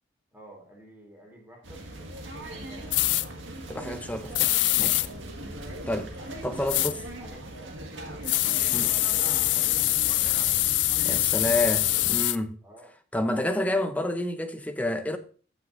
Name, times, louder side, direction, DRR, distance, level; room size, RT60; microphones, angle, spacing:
voice 1, 0.3-3.2 4.9-5.2 6.2-6.3 6.6-7.8 8.3-9.8 10.2-10.6 12.6-12.9 13.2-13.4, right 1 dB, 10° right, 3.1 m, -51 dB
sound 1, 1.6-12.2, right 1 dB, 90° right, 1.8 m, -39 dB
sound 2, 2.9-3.2 4.3-5.1 6.7-6.9 8.2-12.4, left 17 dB, 65° left, 0.4 m, -24 dB
voice 2, 3.7-5.0 5.9-6.1 6.4-7.0 8.7-8.9 11.0-12.6 13.1-15.2, left 1 dB, 10° left, 0.7 m, -29 dB
15.0 x 5.9 x 2.6 m
head